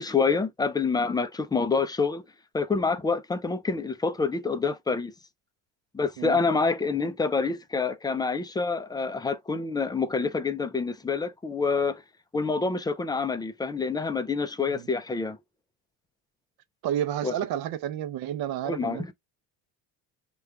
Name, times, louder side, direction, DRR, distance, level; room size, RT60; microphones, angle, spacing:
voice 1, 0.0-2.2 2.5-5.1 5.9-12.0 12.3-15.4 17.2-17.3 18.6-19.1, left 4 dB, 10° left, 0.3 m, -27 dB
voice 2, 16.8-19.1, right 11 dB, 55° right, 0.7 m, -30 dB
3.6 x 2.3 x 3.4 m
supercardioid pair, 100°, 43 cm